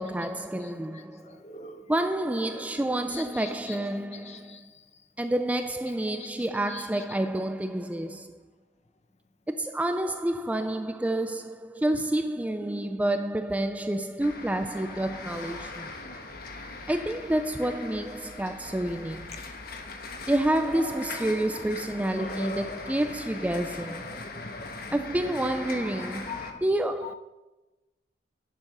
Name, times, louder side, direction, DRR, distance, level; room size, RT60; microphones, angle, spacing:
voice 1, 0.0-1.4 1.9-4.6 5.2-8.4 9.5-15.9 16.9-19.4 20.3-24.3 24.9-27.1, right 1 dB, 10° right, 0.3 m, -29 dB
voice 2, 1.3-3.9 4.3-4.6 6.2-6.3 6.7-7.0 10.0-10.1 16.1-16.2 18.7-18.9 20.6-21.0 21.4-21.5 22.0-23.1 23.5-25.5 26.3-26.5 27.0-27.1, left 2 dB, 35° left, 0.9 m, -42 dB
sound 1, 14.2-26.5, left 3 dB, 50° left, 1.2 m, -41 dB
11.0 x 7.9 x 6.0 m
head